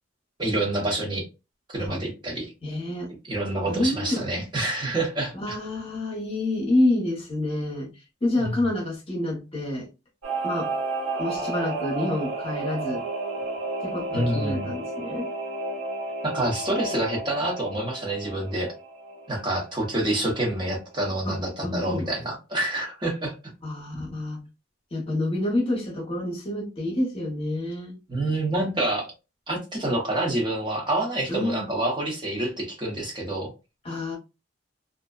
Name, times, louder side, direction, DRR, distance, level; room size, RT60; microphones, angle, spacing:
voice 1, 0.4-1.2 1.7-2.5 3.3-5.6 8.4-8.6 14.1-14.7 16.2-18.7 19.3-23.3 28.1-29.1 29.5-33.5, right 1 dB, 25° right, 0.8 m, -27 dB
voice 2, 2.6-3.1 3.7-4.2 5.3-7.9 8.2-9.9 10.4-10.7 11.2-13.0 13.8-15.3 21.2-22.1 23.6-24.4 24.9-27.9 31.3-31.7 33.8-34.2, left 1 dB, 30° left, 0.8 m, -28 dB
Singing / Musical instrument, 10.2-20.3 20.6-20.7, right 2 dB, 85° right, 1.0 m, -32 dB
2.5 x 2.1 x 2.3 m
head